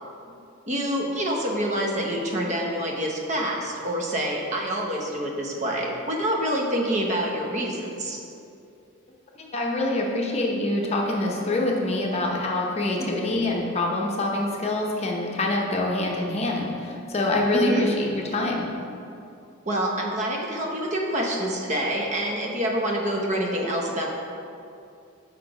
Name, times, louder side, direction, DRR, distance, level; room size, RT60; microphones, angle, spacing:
voice 1, 0.7-8.2 13.0-13.2 17.5-17.9 19.7-24.1, right 1 dB, 35° right, 0 dB, 0.7 m, -26 dB
voice 2, 9.4-18.7, left 2 dB, 30° left, -1 dB, 0.7 m, -25 dB
5.8 x 4.6 x 4.9 m, 2.6 s
head